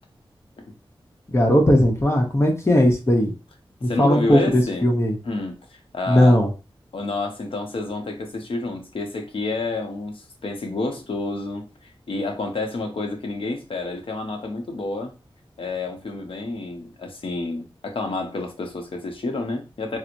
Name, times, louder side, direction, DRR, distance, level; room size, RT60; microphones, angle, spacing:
voice 1, 1.3-3.3 3.8-5.2 6.1-6.5, left 1 dB, 30° left, 0.8 m, -18 dB
voice 2, 3.9-4.9 5.2-6.4 6.9-15.1 15.6-20.0, left 2 dB, 70° left, 0.8 m, -29 dB
4.4 x 2.0 x 2.6 m
wide cardioid pair, 110°, 9 cm